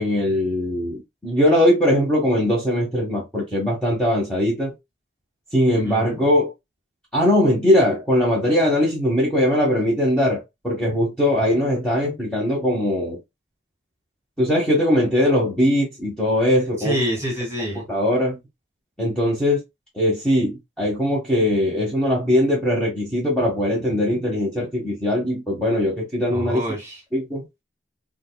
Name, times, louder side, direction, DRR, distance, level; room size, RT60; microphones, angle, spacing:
voice 1, 0.0-4.7 5.5-6.5 7.1-13.2 14.4-17.0 17.7-18.4 19.0-19.6 19.9-26.6 27.1-27.4, left 1 dB, 5° left, 1.2 m, -20 dB
voice 2, 5.7-6.2 16.8-17.9 26.3-27.0, equal, 15° right, 2.0 m, -27 dB
5.1 x 2.4 x 2.2 m
head